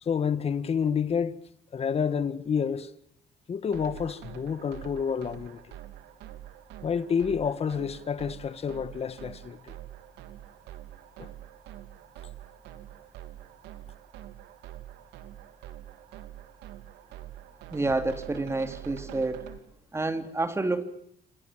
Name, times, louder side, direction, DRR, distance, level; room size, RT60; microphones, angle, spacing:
voice 1, 0.0-1.4 1.7-2.9 3.5-5.8 6.8-9.7 11.2-11.3, left 6 dB, 35° left, 1.7 m, -29 dB
sound 1, 3.7-19.6, right 12 dB, 90° right, 3.2 m, -45 dB
voice 2, 17.7-19.5 19.9-20.8, right 2 dB, 15° right, 2.9 m, -28 dB
27.5 x 27.0 x 7.5 m
cardioid pair, 110°, 17 cm